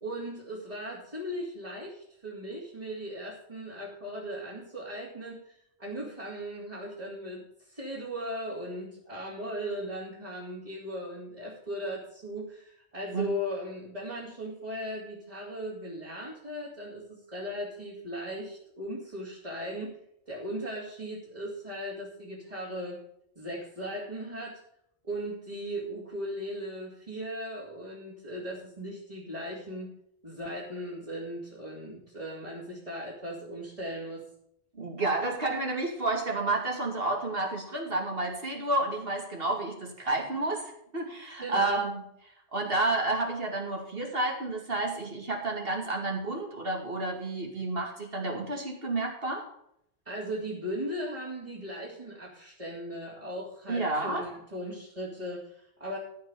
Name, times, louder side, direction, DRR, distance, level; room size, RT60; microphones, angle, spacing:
voice 1, 0.0-5.5 5.8-20.0 20.3-23.0 23.4-24.6 25.0-29.9 30.2-34.2 41.4-41.8 50.0-56.0, equal, 35° right, -6 dB, 2.7 m, -38 dB
voice 2, 34.8-41.9 42.5-49.4 53.7-54.3, right 2 dB, 60° right, 1 dB, 2.5 m, -30 dB
13.5 x 5.8 x 6.9 m, 0.73 s
omnidirectional pair, 1.1 m